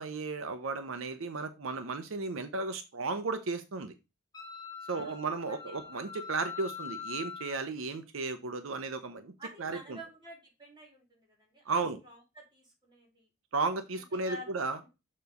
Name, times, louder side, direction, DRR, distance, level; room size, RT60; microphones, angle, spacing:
voice 1, 0.0-3.9 4.9-9.3 9.6-10.0 11.7-12.0 13.5-14.8, right 3 dB, 85° right, 9 dB, 0.7 m, -34 dB
Wind instrument woodwind instrument, 4.3-7.6, left 7 dB, 20° left, 1.6 m, -43 dB
voice 2, 9.4-13.3 14.1-14.5 14.8-14.9, equal, 20° right, 0 dB, 2.6 m, -49 dB
6.9 x 3.2 x 5.2 m, 0.27 s
head